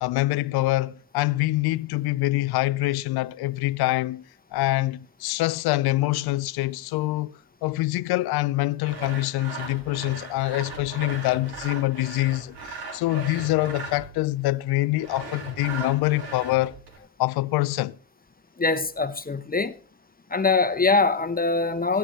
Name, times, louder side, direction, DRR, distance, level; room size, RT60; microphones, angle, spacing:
voice 1, 0.0-4.2 4.5-16.8 17.2-18.0, left 18 dB, 80° left, 0.5 m, -25 dB
Sawing, 8.8-14.2 15.0-17.0, right 3 dB, 85° right, 2.2 m, -38 dB
voice 2, 18.6-19.8 20.3-22.0, left 3 dB, 25° left, 0.9 m, -23 dB
18.5 x 8.7 x 3.0 m
hypercardioid pair, 40°, 38 cm